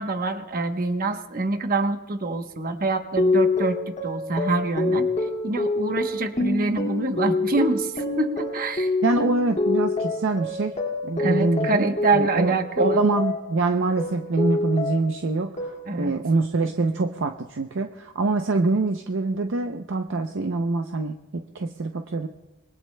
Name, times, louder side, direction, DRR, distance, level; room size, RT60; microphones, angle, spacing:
voice 1, 0.0-8.9 11.2-13.0 15.9-16.1, right 3 dB, 45° right, 6 dB, 1.0 m, -26 dB
sound 1, 3.2-13.6 14.0-15.2 15.6-16.1, left 2 dB, 30° left, 2.1 m, -26 dB
voice 2, 9.0-10.7 11.0-11.9 12.1-22.3, right 3 dB, 60° right, 5 dB, 0.6 m, -25 dB
25.5 x 21.5 x 2.2 m, 1.1 s
head